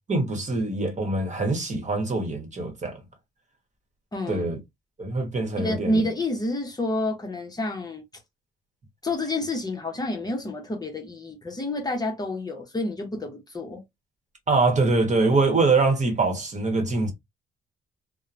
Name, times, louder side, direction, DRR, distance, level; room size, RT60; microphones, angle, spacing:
voice 1, 0.1-3.0 4.3-4.6 5.0-6.0 14.5-17.1, right 3 dB, 35° right, 1.1 m, -24 dB
voice 2, 4.1-4.4 5.6-8.0 9.0-13.8, left 1 dB, 20° left, 0.8 m, -29 dB
2.9 x 2.1 x 2.4 m
cardioid pair, 90°, 20 cm